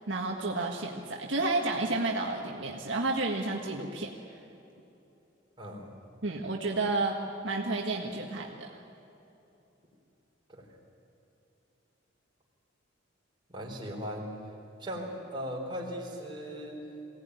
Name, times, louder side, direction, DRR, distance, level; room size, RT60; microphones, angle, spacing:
voice 1, 0.1-4.1 6.2-7.2 7.4-8.7, right 2 dB, 65° right, 0 dB, 1.6 m, -31 dB
voice 2, 5.6-5.9 10.5-10.7 13.5-14.4 14.8-16.8, equal, 25° right, -1 dB, 4.1 m, -38 dB
22.0 x 17.5 x 9.6 m, 3.0 s
head